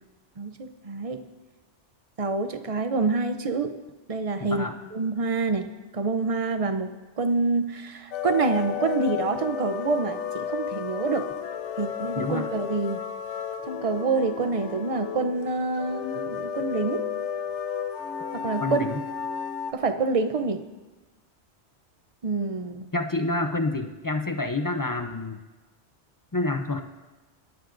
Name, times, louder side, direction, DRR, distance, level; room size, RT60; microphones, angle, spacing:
voice 1, 0.4-1.2 2.2-3.7 4.1-4.7 4.9-5.7 5.9-11.3 11.8-13.0 13.7-17.0 18.3-19.0 19.7-20.6 22.2-22.9, right 4 dB, 40° right, 9 dB, 0.6 m, -27 dB
voice 2, 4.4-4.8 12.2-12.5 18.6-19.0 22.9-25.4 26.3-26.8, left 2 dB, 30° left, 6 dB, 0.3 m, -28 dB
sound 1, 8.1-19.7, left 8 dB, 75° left, 1.0 m, -33 dB
23.5 x 10.5 x 2.6 m, 1.2 s
omnidirectional pair, 1.2 m